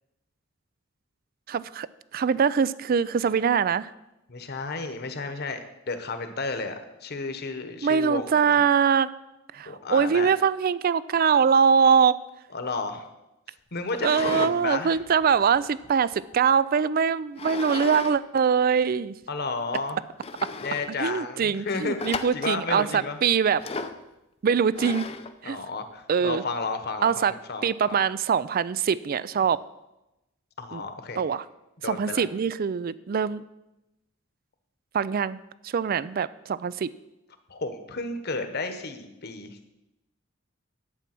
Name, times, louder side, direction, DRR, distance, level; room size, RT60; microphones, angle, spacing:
voice 1, 1.5-1.9 2.1-3.9 7.8-9.1 9.5-12.1 14.0-19.1 21.0-23.6 24.4-25.0 25.4-25.6 26.1-26.4 27.0-27.3 27.6-29.6 30.7-30.8 31.2-31.4 31.8-33.4 34.9-35.4 35.6-36.9, right 6 dB, 45° right, 18 dB, 0.4 m, -23 dB
voice 2, 4.3-5.6 5.9-6.7 7.0-8.6 9.7-10.3 12.5-13.1 13.7-15.0 19.3-20.0 20.6-23.2 25.4-28.0 30.6-31.2 31.8-32.2 37.5-39.7, left 3 dB, 55° left, 8 dB, 1.3 m, -32 dB
sound 1, 13.9-14.6 15.0-16.3 17.4-18.2 18.4-18.5 19.2-19.3 19.7-19.8 20.2-20.9 22.0-22.6 23.6-24.0 24.7-25.3, left 4 dB, 30° left, 0.6 m, -34 dB
11.5 x 8.5 x 6.0 m, 0.93 s
head